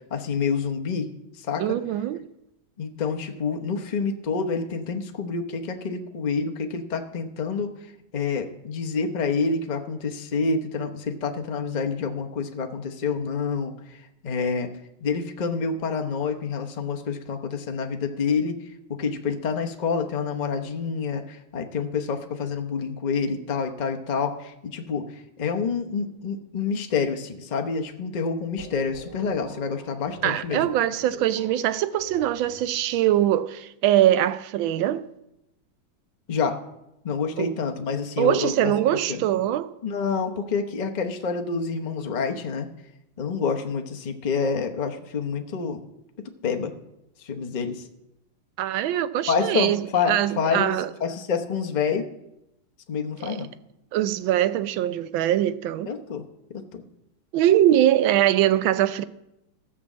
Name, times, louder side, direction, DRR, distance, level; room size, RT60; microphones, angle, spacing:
voice 1, 0.1-1.1 1.4-1.8 2.8-7.7 8.1-14.7 15.0-18.6 18.9-30.7 36.3-36.6 37.0-38.7 39.1-39.2 39.8-42.7 43.2-45.8 46.4-46.7 47.2-47.8 49.3-50.7 51.0-52.1 52.9-53.5 55.9-56.2 56.5-56.8, left 5 dB, 40° left, 0.6 m, -28 dB
voice 2, 1.6-2.3 30.2-35.1 37.4-37.5 38.2-39.7 48.6-49.8 50.1-50.9 53.2-53.5 53.9-55.9 57.3-59.0, right 12 dB, 75° right, 1.3 m, -22 dB
sound 1, 28.6-33.0, equal, 10° right, 2.7 m, -43 dB
15.0 x 6.1 x 7.3 m
omnidirectional pair, 2.2 m